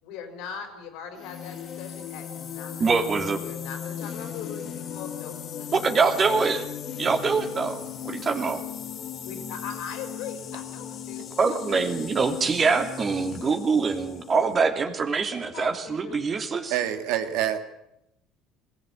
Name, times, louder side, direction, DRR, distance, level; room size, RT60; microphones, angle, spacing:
voice 1, 0.0-6.5 9.2-11.2 12.3-12.4 15.5-17.0, left 6 dB, 70° left, 7 dB, 4.4 m, -40 dB
sound 1, 1.1-14.6, left 9 dB, 50° left, 2.2 m, -37 dB
voice 2, 2.8-3.4 5.7-6.6 7.0-8.6 11.4-16.7, right 4 dB, 35° right, 5 dB, 2.8 m, -24 dB
voice 3, 16.7-17.6, right 11 dB, 70° right, 8 dB, 1.9 m, -26 dB
21.0 x 16.0 x 8.5 m, 0.86 s
hypercardioid pair, 70°, 0 cm